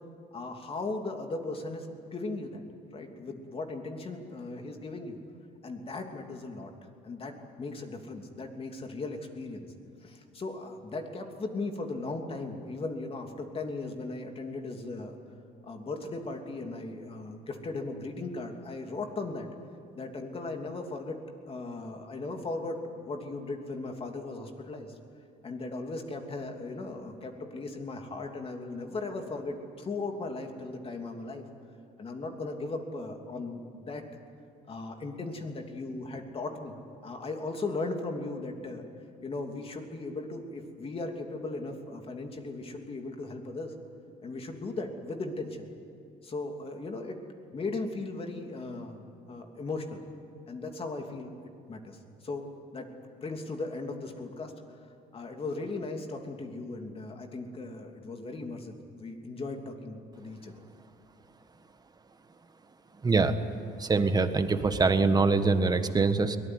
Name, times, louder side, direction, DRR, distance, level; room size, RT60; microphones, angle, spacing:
voice 1, 0.3-2.6 2.9-5.2 5.6-6.7 7.0-9.7 10.0-15.1 15.6-19.5 19.9-21.2 21.5-24.9 25.4-31.4 32.0-34.0 34.7-36.8 37.0-38.8 39.2-43.7 44.2-45.6 46.2-47.2 47.5-49.0 49.3-50.0 50.5-51.3 51.7-52.4 52.7-52.9 53.2-54.5 55.1-60.5, left 3 dB, 35° left, 4 dB, 3.0 m, -37 dB
voice 2, 63.0-63.3 63.8-66.4, right 4 dB, 25° right, 9 dB, 1.5 m, -24 dB
23.0 x 19.0 x 9.5 m, 2.5 s
cardioid pair, 110°, 17 cm